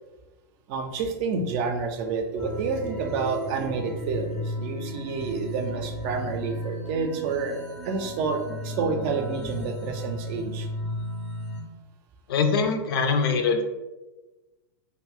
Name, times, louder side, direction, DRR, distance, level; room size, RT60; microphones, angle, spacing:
voice 1, 0.7-7.6 7.8-10.7, right 4 dB, 45° right, 5 dB, 0.5 m, -29 dB
sound 1, 2.4-11.6, equal, 10° left, 0.5 m, -35 dB
voice 2, 12.3-13.6, left 5 dB, 70° left, 6 dB, 0.5 m, -23 dB
2.6 x 2.5 x 3.4 m, 1.1 s
supercardioid pair, 140°, 13 cm